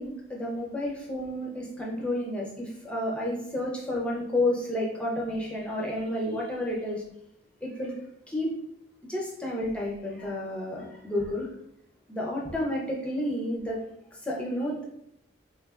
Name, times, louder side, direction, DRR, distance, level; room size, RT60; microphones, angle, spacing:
voice 1, 0.0-7.0 7.6-8.0 8.3-8.5 9.1-11.5 12.1-13.8 14.1-14.8, left 1 dB, 5° left, -3 dB, 0.5 m, -31 dB
3.3 x 3.2 x 2.4 m, 0.76 s
head